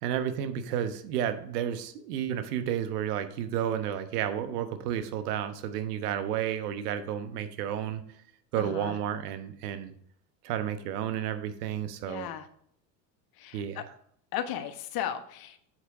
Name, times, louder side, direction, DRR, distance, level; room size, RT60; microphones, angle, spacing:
voice 1, 0.0-8.0 8.5-9.9 10.4-12.3 13.5-13.9, right 9 dB, 65° right, 9 dB, 1.2 m, -31 dB
voice 2, 8.6-8.9 12.1-12.4 13.4-13.8 14.3-15.6, left 10 dB, 45° left, 9 dB, 1.3 m, -35 dB
8.1 x 8.0 x 3.7 m, 0.65 s
hypercardioid pair, 80°, 50 cm